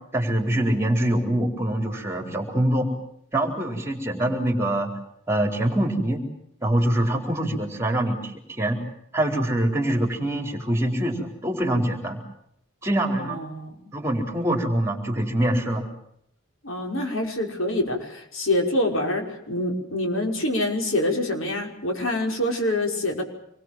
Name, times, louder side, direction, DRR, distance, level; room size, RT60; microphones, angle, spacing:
voice 1, 0.1-2.9 3.3-4.9 5.3-6.2 6.6-8.8 9.1-12.2 12.8-13.4 13.9-15.9, right 1 dB, 10° right, 3 dB, 4.3 m, -24 dB
voice 2, 13.2-13.9 16.6-23.2, left 1 dB, 70° left, 2 dB, 5.6 m, -26 dB
27.0 x 22.0 x 7.6 m, 0.73 s
head